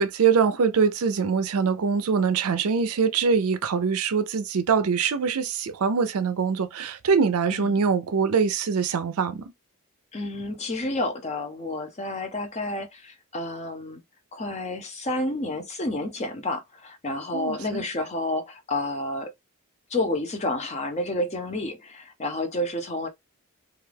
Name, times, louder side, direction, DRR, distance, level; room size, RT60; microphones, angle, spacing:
voice 1, 0.0-9.4 17.3-17.8, right 5 dB, 75° right, 0.5 m, -23 dB
voice 2, 10.1-14.0 14.3-19.3 19.9-23.1, left 1 dB, 30° left, 0.6 m, -30 dB
2.4 x 2.2 x 3.3 m
head